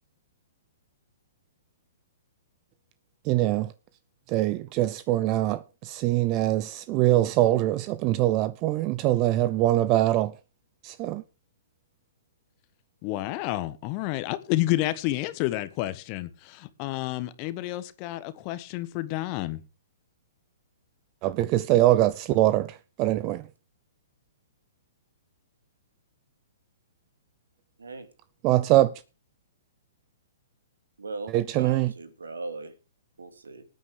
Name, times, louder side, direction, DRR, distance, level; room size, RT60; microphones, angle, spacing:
voice 1, 3.3-3.7 4.3-10.3 10.8-11.2 21.2-22.7 23.0-23.4 28.4-28.9 31.3-31.9, right 15 dB, 35° right, 0.7 m, -23 dB
voice 2, 13.0-19.6, left 16 dB, 40° left, 1.3 m, -30 dB
voice 3, 31.0-31.3 31.6-32.7 33.2-33.6, right 3 dB, 85° right, 2.5 m, -38 dB
19.5 x 9.2 x 3.4 m
hypercardioid pair, 120°, 0 cm